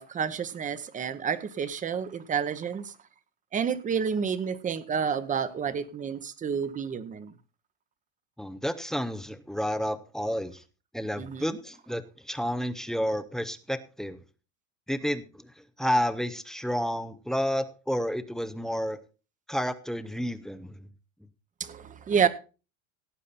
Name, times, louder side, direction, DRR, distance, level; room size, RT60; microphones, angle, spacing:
voice 1, 0.0-2.9 3.5-7.3 11.2-11.5 21.6-22.3, right 7 dB, 20° right, 0.9 m, -29 dB
voice 2, 8.4-10.6 10.9-14.2 14.9-15.5 15.8-19.0 19.5-20.9, equal, ahead, 0.6 m, -30 dB
17.0 x 8.3 x 4.2 m
supercardioid pair, 145°, 41 cm